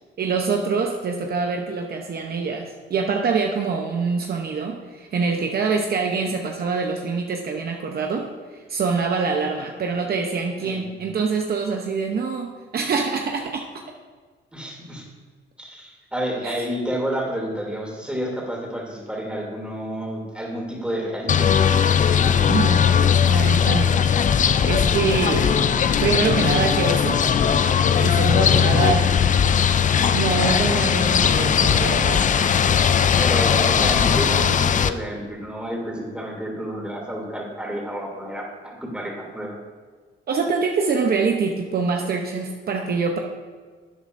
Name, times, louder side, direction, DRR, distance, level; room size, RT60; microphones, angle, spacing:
voice 1, 0.2-13.7 16.4-16.6 22.5-24.1 24.6-25.5 26.0-27.2 28.0-29.1 30.1-32.2 40.3-43.2, right 5 dB, 50° right, 2 dB, 0.9 m, -25 dB
voice 2, 10.6-11.0 14.5-15.1 15.6-21.6 33.2-39.6, equal, 5° right, -2 dB, 2.8 m, -30 dB
sound 1, 21.3-34.9, left 7 dB, 40° left, 0.4 m, -19 dB
12.0 x 8.0 x 2.6 m, 1.5 s
cardioid pair, 90°, 20 cm